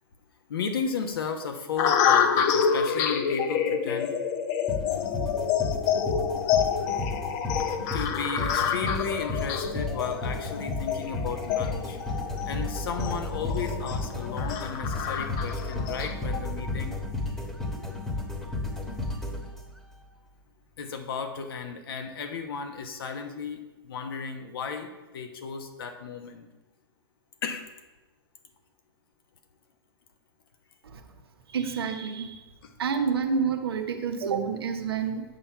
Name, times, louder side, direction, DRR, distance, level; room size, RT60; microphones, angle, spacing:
voice 1, 0.5-4.2 5.6-6.0 7.9-12.0 12.4-17.0 20.8-26.5 27.4-27.6 32.6-32.7, left 6 dB, 70° left, 5 dB, 1.1 m, -34 dB
sound 1, 1.8-16.1, left 7 dB, 45° left, 0.7 m, -28 dB
sound 2, 4.7-19.9, left 2 dB, 5° left, 1.3 m, -33 dB
voice 2, 31.5-32.4 32.8-35.2, right 6 dB, 80° right, 4 dB, 1.0 m, -28 dB
8.1 x 5.7 x 4.5 m, 1.1 s
hypercardioid pair, 120°, 13 cm